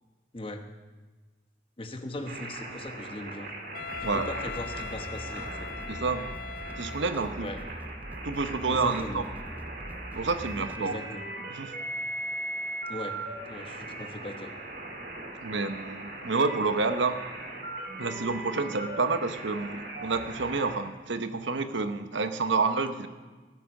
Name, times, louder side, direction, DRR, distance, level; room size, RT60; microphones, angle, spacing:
voice 1, 1.8-3.5 4.0-5.7 7.4-7.6 8.7-9.2 10.6-11.2 12.9-13.2 13.5-14.5, left 1 dB, 30° left, 5 dB, 1.0 m, -39 dB
sound 1, 2.3-20.8, right 2 dB, 55° right, 2.1 m, -39 dB
Wind instrument woodwind instrument, 3.7-7.6, left 6 dB, 50° left, 0.5 m, -40 dB
sound 2, 3.8-10.8, right 1 dB, 10° right, 0.4 m, -42 dB
voice 2, 5.9-6.3 6.8-7.5 8.2-9.2 10.1-11.1 11.5-11.7 15.4-17.2 18.0-23.1, right 4 dB, 75° right, 9 dB, 0.9 m, -29 dB
16.0 x 9.0 x 6.4 m, 1.3 s
head